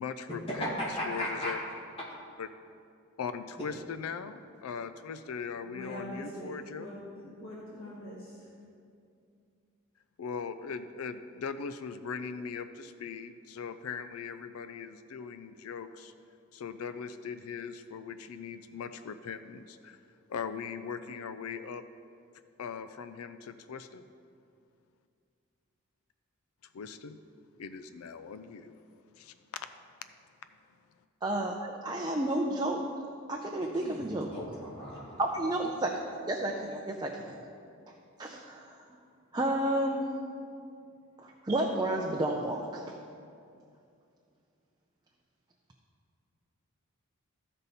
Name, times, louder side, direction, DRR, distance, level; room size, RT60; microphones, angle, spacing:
voice 1, 0.0-1.6 2.4-2.5 3.2-6.9 10.2-16.1 16.5-20.0 20.3-21.8 22.6-24.0 26.7-27.2 27.6-28.8 29.2-29.7, left 6 dB, 90° left, 11 dB, 0.4 m, -40 dB
voice 2, 0.6-1.5 33.8-35.2, equal, 25° left, -6 dB, 1.8 m, -36 dB
voice 3, 5.6-8.5, equal, 65° left, -7 dB, 1.5 m, -43 dB
voice 4, 31.2-32.9 33.3-34.3 35.2-35.9 36.3-37.4 37.9-38.8 39.3-40.1 41.2-43.0, right 1 dB, 20° right, 0 dB, 0.5 m, -31 dB
14.5 x 5.4 x 4.1 m, 2.4 s
head